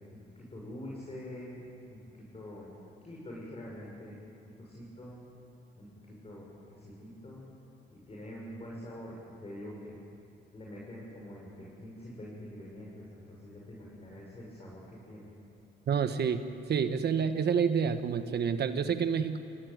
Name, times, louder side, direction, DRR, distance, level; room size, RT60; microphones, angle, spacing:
voice 1, 0.0-1.6 1.9-2.7 3.0-4.1 4.6-5.2 5.7-5.9 6.2-7.5 8.1-9.9 10.5-15.3, left 1 dB, 30° left, -3 dB, 6.7 m, -45 dB
voice 2, 15.9-16.4 16.7-19.4, right 7 dB, 55° right, 9 dB, 1.4 m, -28 dB
27.5 x 17.0 x 9.5 m, 2.7 s
cardioid pair, 90°, 20 cm